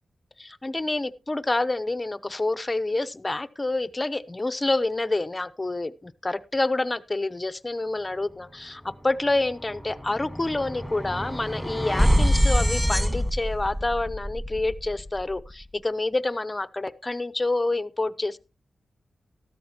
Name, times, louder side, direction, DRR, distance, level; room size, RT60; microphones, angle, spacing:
voice 1, 0.4-18.4, left 2 dB, 25° left, 0.7 m, -28 dB
sound 1, 8.8-9.0 9.3-15.5, equal, 5° right, 1.8 m, -26 dB
13.5 x 13.0 x 2.9 m
cardioid pair, 65°, 0 cm